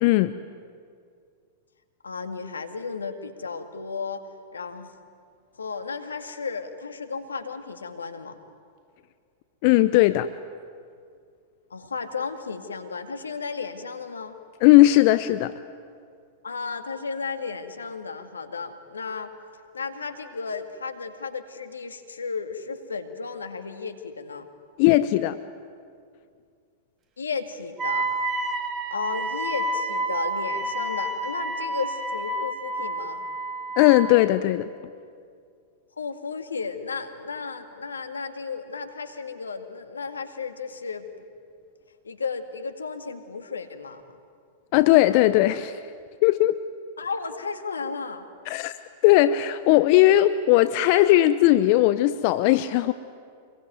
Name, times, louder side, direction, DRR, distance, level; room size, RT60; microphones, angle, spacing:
voice 1, 0.0-0.3 9.6-10.3 14.6-15.5 24.8-25.4 33.8-34.7 44.7-45.8 46.2-46.6 48.5-48.7 49.0-52.9, left 15 dB, 50° left, 13 dB, 0.7 m, -18 dB
voice 2, 2.0-4.3 4.5-5.0 5.5-8.4 11.7-14.4 16.4-19.3 19.7-24.5 27.2-28.1 28.9-33.3 36.0-41.1 42.0-44.0 47.0-48.3, left 5 dB, 90° left, 7 dB, 2.1 m, -34 dB
Wind instrument woodwind instrument, 27.8-34.2, right 2 dB, 30° right, 2.6 m, -29 dB
26.5 x 22.0 x 9.4 m, 2.2 s
hypercardioid pair, 100°, 0 cm